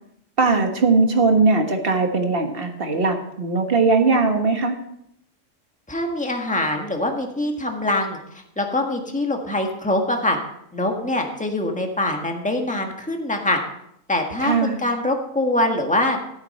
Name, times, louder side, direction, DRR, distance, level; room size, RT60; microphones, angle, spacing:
voice 1, 0.4-4.7 14.4-14.8, right 3 dB, 45° right, 4 dB, 1.6 m, -19 dB
voice 2, 5.9-8.2 8.6-10.4 10.7-13.6 14.1-16.2, left 1 dB, 5° left, 3 dB, 1.5 m, -23 dB
14.0 x 9.1 x 4.3 m, 0.77 s
omnidirectional pair, 1.3 m